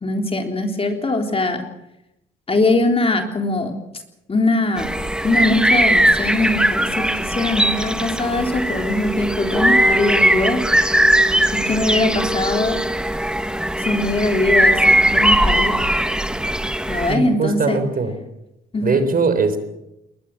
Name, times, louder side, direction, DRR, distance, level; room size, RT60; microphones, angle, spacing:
voice 1, 0.0-1.6 2.5-3.7 4.3-4.9 5.2-10.6 11.5-12.8 13.8-15.8 16.9-17.8 18.7-19.1, left 2 dB, 30° left, 4 dB, 3.6 m, -21 dB
sound 1, 4.8-17.2, right 1 dB, 5° right, 1.5 m, -19 dB
voice 2, 17.1-18.2 18.8-19.6, right 4 dB, 45° right, 10 dB, 3.9 m, -20 dB
21.0 x 20.0 x 7.7 m, 0.89 s
cardioid pair, 90°, 20 cm